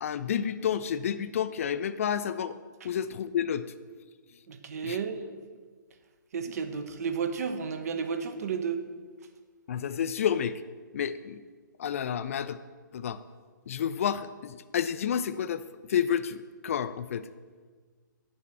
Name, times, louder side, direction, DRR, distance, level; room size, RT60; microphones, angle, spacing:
voice 1, 0.0-2.6 2.8-3.7 4.8-5.0 9.7-10.6 10.9-11.4 11.8-12.6 12.9-13.2 13.7-15.6 15.9-17.3, left 8 dB, 40° left, 13 dB, 0.4 m, -30 dB
voice 2, 4.5-5.2 6.3-8.8, right 6 dB, 50° right, 8 dB, 0.9 m, -32 dB
6.9 x 5.7 x 7.4 m, 1.5 s
figure-of-eight pair, 135°, 11 cm